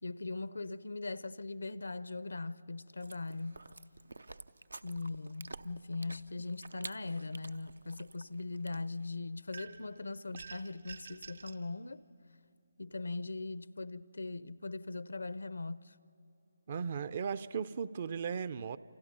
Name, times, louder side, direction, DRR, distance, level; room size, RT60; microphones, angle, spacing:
voice 1, 0.0-3.6 4.8-12.0 12.8-15.9, left 3 dB, 70° left, 0.7 m, -40 dB
Chewing mastication, 3.0-9.1, right 2 dB, 75° right, 0.7 m, -51 dB
sound 1, 9.5-9.9 10.4-11.6, right 5 dB, 60° right, 1.7 m, -49 dB
voice 2, 16.7-18.8, right 6 dB, 40° right, 0.6 m, -36 dB
28.5 x 28.0 x 5.5 m
figure-of-eight pair, 150°, 0 cm